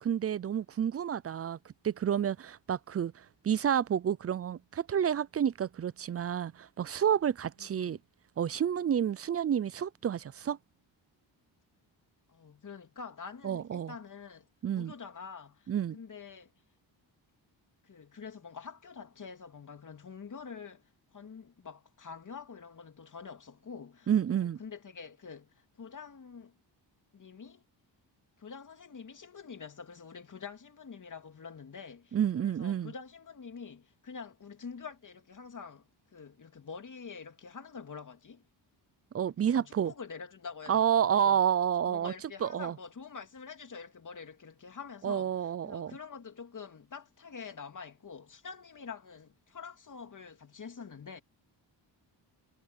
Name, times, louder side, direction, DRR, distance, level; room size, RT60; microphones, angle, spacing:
voice 1, 0.0-1.6 1.8-8.0 8.4-10.6 13.4-13.9 14.6-14.9 15.7-16.0 24.1-24.6 32.1-32.9 39.1-39.9 40.7-42.1 42.4-42.7 45.0-45.9, right 9 dB, 35° right, 0.4 m, -29 dB
voice 2, 7.6-8.0 12.3-14.5 14.7-16.5 17.8-26.5 27.1-27.6 28.4-38.4 39.4-41.4 41.8-51.2, left 5 dB, 40° left, 2.9 m, -46 dB
cardioid pair, 105°, 44 cm